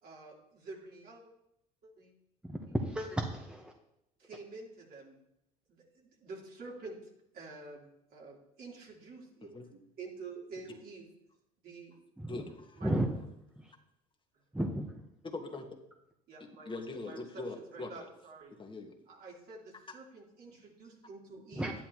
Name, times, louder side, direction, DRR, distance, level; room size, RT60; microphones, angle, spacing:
voice 1, 0.0-1.3 1.8-2.1 4.2-5.2 5.7-7.0 7.3-11.1 11.6-11.9 12.8-13.0 16.3-16.7 17.1-18.5 19.1-21.7, right 3 dB, 55° right, -3 dB, 3.8 m, -48 dB
voice 2, 2.4-3.7 12.2-12.5 12.8-13.1 14.5-14.9 21.6-21.7, right 1 dB, 5° right, 2 dB, 1.3 m, -33 dB
voice 3, 12.3-12.8 15.2-15.6 16.6-18.0 18.6-19.0, left 3 dB, 25° left, 3 dB, 1.7 m, -41 dB
11.5 x 10.5 x 3.1 m, 0.80 s
hypercardioid pair, 70°, 19 cm